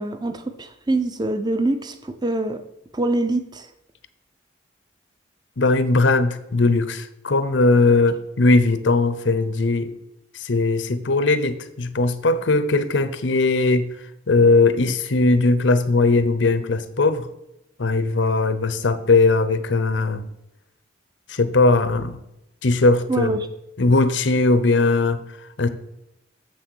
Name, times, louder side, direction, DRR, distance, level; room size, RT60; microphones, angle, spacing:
voice 1, 0.0-2.6 2.9-3.7 23.1-23.5, right 2 dB, 20° right, 9 dB, 0.6 m, -24 dB
voice 2, 5.6-9.9 10.3-13.9 14.3-17.3 17.8-20.2 21.3-22.2 22.6-23.3 23.8-25.2 25.6-25.7, left 3 dB, 75° left, 12 dB, 0.7 m, -19 dB
7.4 x 6.3 x 6.2 m, 0.87 s
head